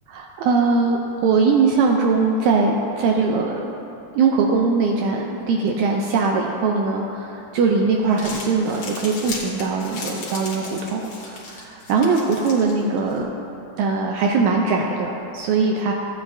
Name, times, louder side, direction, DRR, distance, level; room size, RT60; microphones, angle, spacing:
voice 1, 0.1-3.6 4.1-13.3 13.8-15.9, right 4 dB, 80° right, 1 dB, 1.7 m, -21 dB
Crumpling crinkling, 8.0-13.2, left 3 dB, 55° left, 2.1 m, -36 dB
14.5 x 8.8 x 2.6 m, 2.9 s
omnidirectional pair, 3.8 m